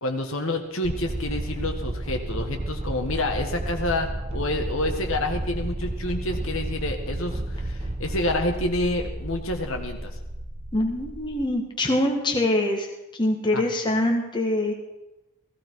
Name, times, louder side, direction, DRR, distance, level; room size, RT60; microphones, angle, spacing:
voice 1, 0.0-10.2 13.5-13.7, left 1 dB, 65° left, 4 dB, 1.7 m, -28 dB
sound 1, 0.8-11.5, right 1 dB, 30° right, 0.9 m, -32 dB
voice 2, 10.7-12.9 13.2-14.8, left 1 dB, 20° left, 2 dB, 1.6 m, -24 dB
16.5 x 15.0 x 4.7 m, 0.96 s
head